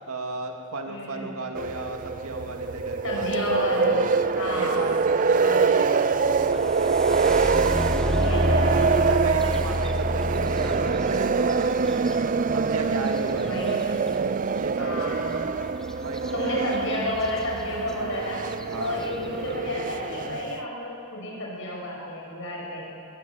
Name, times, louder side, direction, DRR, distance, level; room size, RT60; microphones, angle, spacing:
voice 1, 0.1-4.2 4.5-8.6 9.0-12.2 12.5-13.8 14.5-15.8 16.0-16.3 16.5-16.7 18.7-19.0, right 2 dB, 75° right, 3 dB, 2.1 m, -35 dB
voice 2, 0.9-1.3 3.0-4.1 4.3-4.8 5.4-5.7 8.1-9.2 13.4-13.9 14.8-15.5 16.3-18.4 18.8-22.9, left 1 dB, 60° left, -2 dB, 6.2 m, -31 dB
sound 1, 1.5-20.6, right 5 dB, 35° right, 0.4 m, -25 dB
sound 2, 6.3-14.1 16.2-16.3 16.7-17.3 17.9-18.0 18.5-18.9, left 1 dB, 5° left, 0.9 m, -30 dB
22.0 x 13.5 x 8.9 m, 2.7 s
head